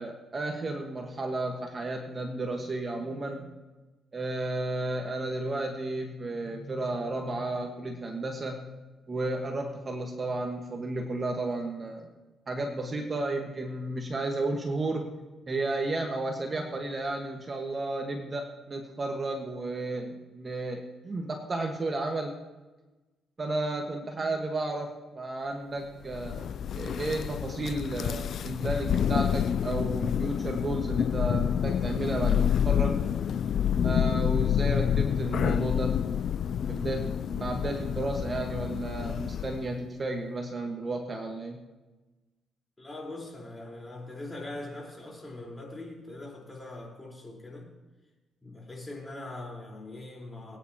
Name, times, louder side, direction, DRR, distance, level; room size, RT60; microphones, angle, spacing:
voice 1, 0.0-3.5 4.1-8.6 9.1-12.1 12.5-15.1 15.5-22.3 23.4-33.0 33.8-36.3 36.7-41.6, right 2 dB, 35° right, 2 dB, 1.5 m, -33 dB
Thunder, 26.1-39.7, left 9 dB, 60° left, 0.3 m, -28 dB
voice 2, 42.8-47.7 48.4-50.6, left 2 dB, 20° left, -2 dB, 4.5 m, -42 dB
23.0 x 9.7 x 3.0 m, 1.1 s
cardioid pair, 90°, 0 cm